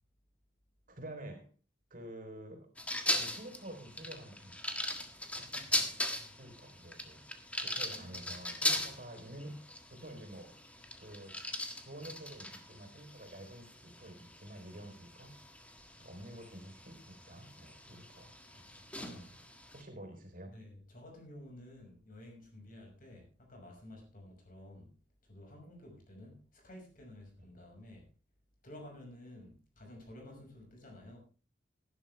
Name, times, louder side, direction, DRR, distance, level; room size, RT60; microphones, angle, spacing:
voice 1, 0.9-1.5 1.9-2.7 3.1-4.5 5.4-6.1 6.4-7.2 7.6-9.6 9.9-10.5 11.0-11.4 11.8-15.3 16.0-19.3 19.7-20.5 27.4-27.5, right 1 dB, 50° right, 5 dB, 3.8 m, -49 dB
sound 1, 2.8-19.8, left 1 dB, 5° left, 1.6 m, -40 dB
voice 2, 7.9-8.2 16.3-16.4 20.5-24.9 25.3-28.1 28.6-31.2, left 1 dB, 50° left, 2 dB, 5.8 m, -52 dB
17.5 x 11.0 x 3.4 m, 0.36 s
head